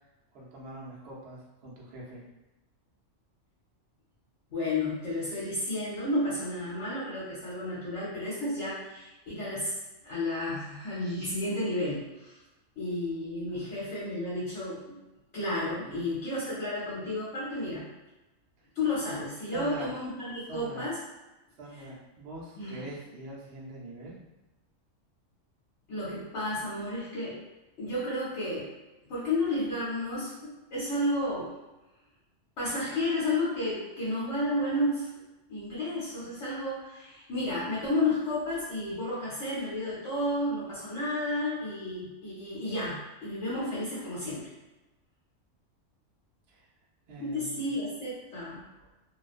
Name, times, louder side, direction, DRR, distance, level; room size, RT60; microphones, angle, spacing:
voice 1, 0.3-2.2 13.5-13.7 15.8-16.0 19.5-19.9 20.5-20.9 21.6-24.2 46.5-46.7 47.1-47.7, right 1 dB, 60° right, -5 dB, 0.8 m, -43 dB
voice 2, 4.5-9.8 10.0-12.4 12.8-15.0 15.3-17.9 18.7-21.0 22.5-22.8 25.9-27.4 27.8-28.7 29.1-31.5 32.6-35.1 35.5-44.5 47.2-48.7, left 1 dB, 65° left, -9 dB, 1.1 m, -32 dB
2.5 x 2.1 x 2.4 m, 1.1 s
omnidirectional pair, 1.3 m